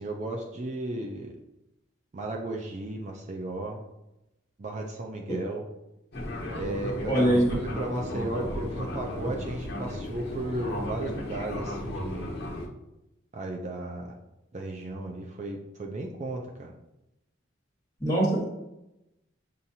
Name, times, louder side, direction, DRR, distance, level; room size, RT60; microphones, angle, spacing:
voice 1, 0.0-1.3 2.1-3.8 4.6-5.7 6.6-7.4 7.7-12.4 13.3-14.1 14.5-16.7, right 2 dB, 35° right, 0 dB, 0.4 m, -35 dB
Fixed-wing aircraft airplane, 6.1-12.7, left 1 dB, 55° left, 1.0 m, -34 dB
voice 2, 7.1-7.6 18.0-18.4, right 1 dB, 15° left, -4 dB, 1.4 m, -23 dB
7.2 x 2.5 x 2.7 m, 0.92 s
head